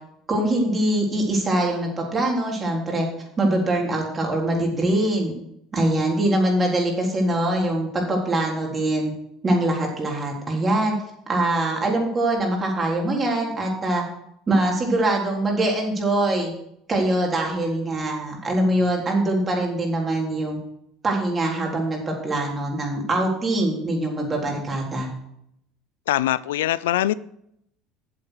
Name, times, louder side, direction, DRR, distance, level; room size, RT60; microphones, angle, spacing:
voice 1, 0.3-3.1 3.4-5.3 5.7-9.1 9.4-11.0 11.3-14.0 14.5-16.5 16.9-20.6 21.0-25.1, right 1 dB, 30° right, 0 dB, 3.7 m, -23 dB
voice 2, 26.1-27.1, left 14 dB, 90° left, 18 dB, 0.3 m, -22 dB
8.5 x 7.5 x 6.5 m, 0.75 s
hypercardioid pair, 85°, 0 cm